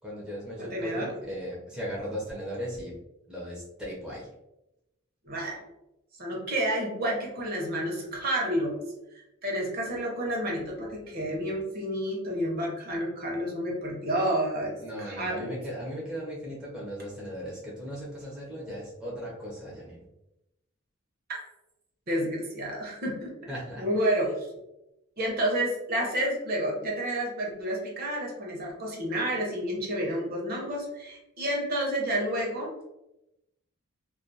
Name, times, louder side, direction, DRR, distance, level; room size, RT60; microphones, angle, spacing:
voice 1, 0.0-3.0 3.3-4.3 14.8-20.0 23.5-24.2, equal, 5° right, -6 dB, 0.5 m, -37 dB
voice 2, 0.6-1.1 5.2-5.6 6.2-8.8 9.1-15.6 22.1-23.3 23.8-24.5 25.2-32.7, right 1 dB, 45° right, -1 dB, 0.6 m, -30 dB
2.3 x 2.3 x 2.6 m, 0.90 s
head